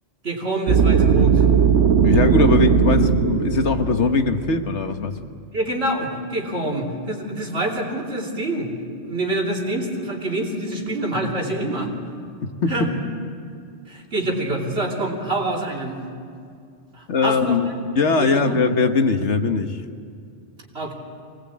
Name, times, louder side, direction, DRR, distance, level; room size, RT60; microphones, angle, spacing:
voice 1, 0.2-1.4 5.5-8.7 9.0-11.9 12.7-12.9 13.9-16.0 16.9-17.8 18.2-18.6 20.7-20.9, right 1 dB, 65° right, -1 dB, 3.3 m, -26 dB
sound 1, 0.7-4.6, right 7 dB, 85° right, 1.1 m, -18 dB
voice 2, 2.0-5.1 12.4-12.9 17.1-17.7 17.9-19.8, left 4 dB, 80° left, 7 dB, 1.5 m, -20 dB
24.5 x 19.0 x 8.5 m, 2.3 s
omnidirectional pair, 1.2 m